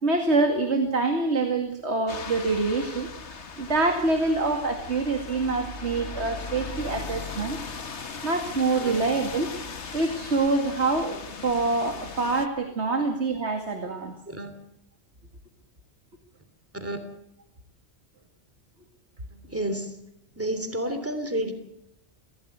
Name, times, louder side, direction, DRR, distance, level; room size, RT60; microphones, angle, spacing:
voice 1, 0.0-3.1 3.6-7.6 8.2-9.5 9.9-14.1, right 3 dB, 75° right, 5 dB, 2.5 m, -25 dB
sound 1, 2.1-12.5, left 4 dB, 80° left, 1.7 m, -38 dB
voice 2, 19.3-20.0 20.3-21.5, right 1 dB, 10° right, 8 dB, 3.1 m, -31 dB
25.0 x 16.0 x 8.1 m, 0.80 s
omnidirectional pair, 1.1 m